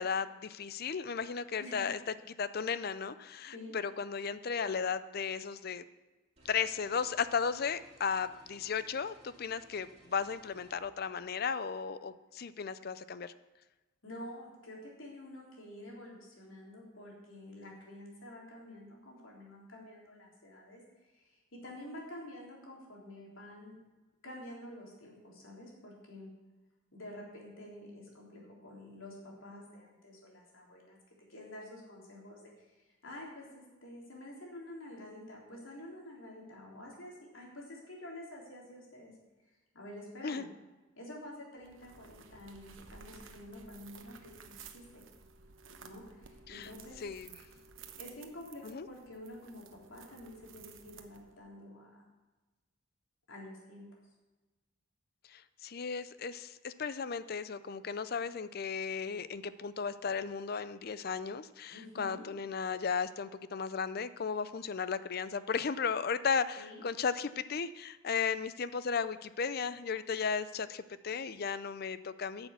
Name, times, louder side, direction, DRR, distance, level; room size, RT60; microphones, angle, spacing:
voice 1, 0.0-2.0 2.4-5.8 6.5-13.3 40.2-40.4 46.5-46.7 47.0-47.3 48.6-48.9 55.3-72.5, left 6 dB, 50° left, 15 dB, 0.5 m, -35 dB
sound 1, 6.4-10.7, equal, 30° right, 2.8 m, -61 dB
voice 2, 14.0-23.8 24.2-26.3 26.9-31.0 31.3-39.1 39.7-40.5 41.0-45.0 45.8-47.0 48.0-52.1 53.3-53.9 61.7-62.3 66.6-66.8, left 1 dB, 80° left, -2 dB, 3.6 m, -49 dB
sound 2, 41.6-51.5, right 5 dB, 75° right, 1.0 m, -54 dB
10.0 x 7.0 x 8.1 m, 1.2 s
head